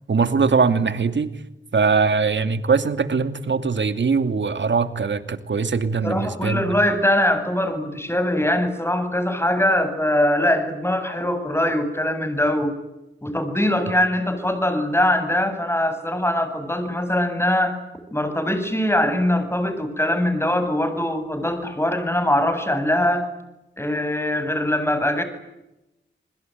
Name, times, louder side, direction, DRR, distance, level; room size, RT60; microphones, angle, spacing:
voice 1, 0.1-1.3 1.7-6.7, right 5 dB, 70° right, 10 dB, 2.5 m, -21 dB
voice 2, 6.0-12.7 13.2-17.8 18.1-23.3 23.8-25.2, left 1 dB, 10° left, 9 dB, 7.8 m, -22 dB
29.5 x 21.0 x 9.4 m, 0.94 s
cardioid pair, 50°, 20 cm